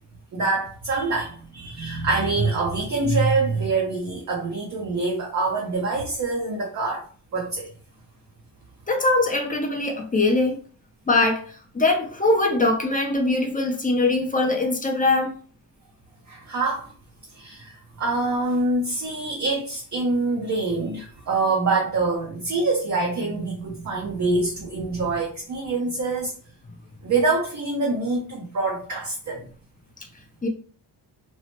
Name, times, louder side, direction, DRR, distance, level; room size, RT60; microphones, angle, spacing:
voice 1, 0.3-7.1 7.3-7.7 16.3-16.9 17.3-26.3 27.0-29.4, right 3 dB, 40° right, 0.6 m, -25 dB
voice 2, 8.9-10.6 11.1-11.5 11.7-15.3 30.4-30.5, left 2 dB, 20° left, 0.6 m, -22 dB
3.0 x 2.0 x 2.9 m
cardioid pair, 110°, 43 cm